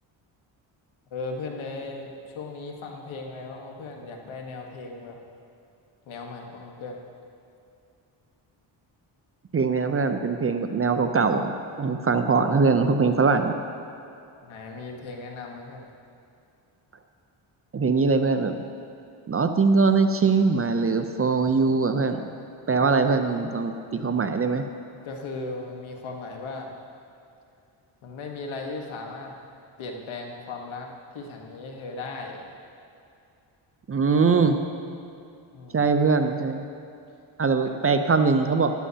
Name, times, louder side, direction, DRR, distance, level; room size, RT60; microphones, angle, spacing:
voice 1, 1.1-5.2 6.1-7.0 14.4-15.9 25.0-26.7 28.0-29.4 29.8-30.9 31.1-32.4 35.5-35.8 37.5-37.9, left 3 dB, 75° left, 2 dB, 1.4 m, -37 dB
voice 2, 9.5-13.6 17.7-18.6 19.3-22.2 22.7-24.7 33.9-34.6 35.7-36.6 37.4-38.7, right 4 dB, 30° right, 7 dB, 0.6 m, -22 dB
13.0 x 11.0 x 2.8 m, 2.6 s
cardioid pair, 75°, 48 cm